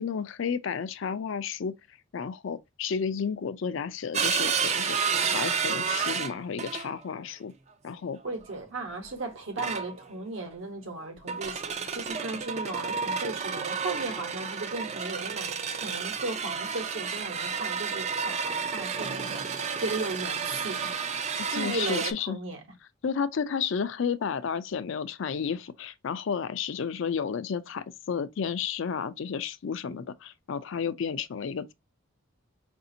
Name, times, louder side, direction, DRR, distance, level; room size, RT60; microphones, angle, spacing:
voice 1, 0.0-1.7 2.1-5.0 5.3-7.5 7.8-8.2 21.5-22.4 23.0-31.7, left 6 dB, 60° left, 0.4 m, -32 dB
sound 1, 4.1-7.0 8.3-8.6 9.6-10.2 11.2-22.1, right 6 dB, 30° right, 0.4 m, -31 dB
voice 2, 8.2-19.4 19.8-21.0 21.5-22.6, right 2 dB, 70° right, 1.0 m, -36 dB
4.9 x 2.6 x 2.6 m
head